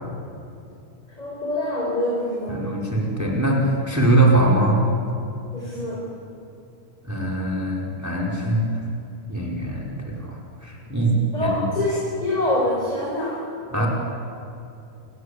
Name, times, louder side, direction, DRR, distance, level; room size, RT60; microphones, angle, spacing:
voice 1, 1.2-2.7 5.5-6.0 11.3-13.4 13.7-13.9, left 1 dB, 10° left, -4 dB, 5.1 m, -25 dB
voice 2, 2.5-4.8 7.1-8.7 9.3-9.9 10.2-11.7 13.7-13.9, right 2 dB, 5° right, -2 dB, 4.9 m, -22 dB
30.0 x 20.5 x 8.7 m, 2.6 s
omnidirectional pair, 3.7 m